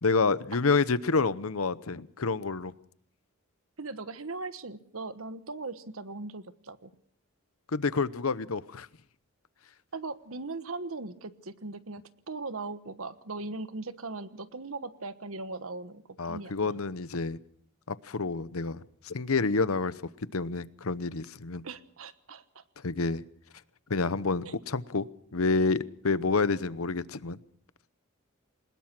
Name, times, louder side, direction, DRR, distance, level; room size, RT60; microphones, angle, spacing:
voice 1, 0.0-2.7 7.7-8.9 16.2-17.4 17.9-19.9 20.3-21.6 22.8-23.2 23.9-27.4, left 4 dB, 80° left, 16 dB, 0.9 m, -28 dB
voice 2, 3.8-6.9 9.9-16.8 21.6-22.6 24.4-24.5, right 3 dB, 75° right, 13 dB, 1.3 m, -39 dB
22.5 x 20.5 x 6.0 m, 0.63 s
head